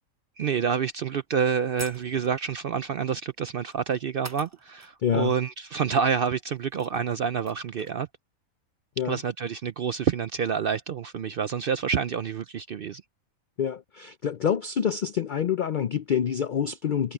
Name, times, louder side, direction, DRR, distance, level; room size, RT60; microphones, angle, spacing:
voice 1, 0.4-8.1 9.0-13.0, right 7 dB, 65° right, 0.5 m, -28 dB
sound 1, 1.1-1.2 1.8-2.5 3.6-3.8 4.2-5.0 5.2-5.3 6.3-6.4 6.6-8.0, right 1 dB, 15° right, 0.7 m, -44 dB
voice 2, 5.0-5.3 9.0-9.2 13.6-17.1, left 8 dB, 80° left, 0.4 m, -27 dB
omnidirectional pair, 1.5 m